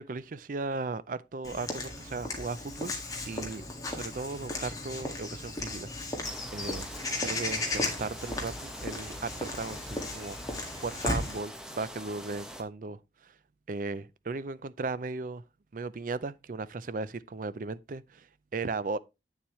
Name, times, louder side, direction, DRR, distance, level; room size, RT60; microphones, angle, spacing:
voice 1, 0.0-3.0 3.2-6.9 7.2-13.3 13.7-15.4 15.7-18.3 18.5-19.0, right 3 dB, 50° right, 0.5 m, -37 dB
Walk footsteps / Bird vocalization bird call bird song, 1.4-11.4, left 2 dB, 20° left, 1.7 m, -35 dB
sound 1, 6.2-12.6, equal, 5° right, 1.0 m, -44 dB
8.6 x 7.2 x 3.1 m
head